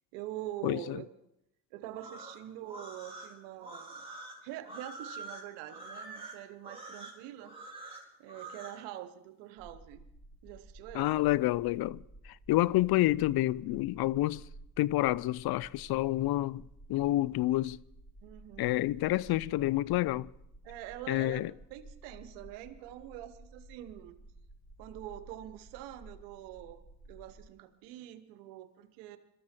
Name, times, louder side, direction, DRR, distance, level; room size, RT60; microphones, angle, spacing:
voice 1, 0.1-1.1 1.7-4.1 4.4-7.6 8.2-10.0 10.4-11.3 18.2-18.8 20.6-24.2 24.8-29.2, right 13 dB, 90° right, 1.1 m, -45 dB
voice 2, 0.6-1.0 10.9-14.4 14.8-16.6 16.9-17.8 18.6-20.3 21.1-21.5, left 16 dB, 65° left, 0.5 m, -29 dB
sound 1, 1.9-8.8, right 2 dB, 15° right, 4.9 m, -46 dB
sound 2, 9.6-27.4, right 2 dB, 15° left, 7.8 m, -54 dB
22.5 x 13.0 x 4.4 m
supercardioid pair, 55°, 40 cm